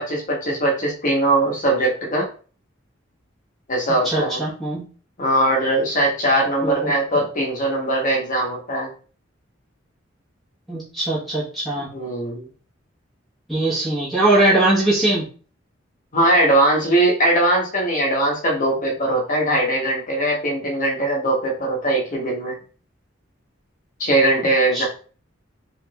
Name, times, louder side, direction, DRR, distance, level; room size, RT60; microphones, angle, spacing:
voice 1, 0.0-2.3 3.7-4.4 5.2-8.9 11.8-12.5 16.1-22.5 24.0-24.8, right 1 dB, 45° left, -1 dB, 1.1 m, -20 dB
voice 2, 4.0-4.8 6.6-6.9 10.7-11.9 13.5-15.3 24.7-24.8, right 2 dB, ahead, -9 dB, 1.2 m, -20 dB
3.4 x 3.3 x 2.4 m, 0.39 s
head